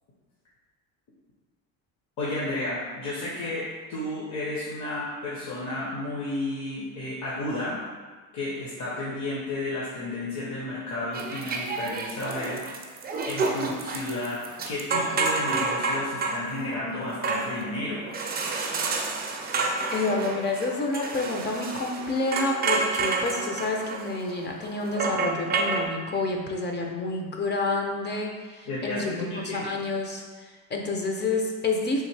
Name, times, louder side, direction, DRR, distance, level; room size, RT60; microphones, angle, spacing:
voice 1, 2.2-7.8 8.3-18.0 28.7-29.8, left 2 dB, 50° left, -6 dB, 0.9 m, -32 dB
sound 1, 11.1-25.9, right 3 dB, 25° right, 0.4 m, -29 dB
voice 2, 19.9-32.0, left 3 dB, 25° left, 1 dB, 0.5 m, -29 dB
3.6 x 2.6 x 3.3 m, 1.5 s
cardioid pair, 105°, 39 cm